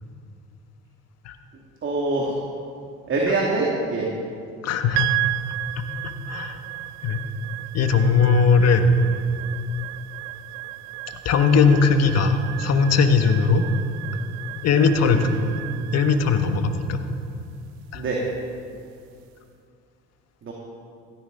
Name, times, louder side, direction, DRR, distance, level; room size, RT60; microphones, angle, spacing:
voice 1, 1.8-2.4 3.1-4.1 15.0-15.2 17.9-18.2 20.4-20.5, right 2 dB, 40° right, -2 dB, 2.4 m, -24 dB
voice 2, 4.6-5.1 6.3-6.6 7.0-7.2 7.7-9.0 11.2-13.6 14.6-15.3 15.9-17.0 17.9-18.0, left 5 dB, 55° left, 7 dB, 1.4 m, -19 dB
sound 1, 5.0-19.3, right 18 dB, 80° right, 0.5 m, -34 dB
16.0 x 13.0 x 3.9 m, 2.4 s
hypercardioid pair, 65°, 31 cm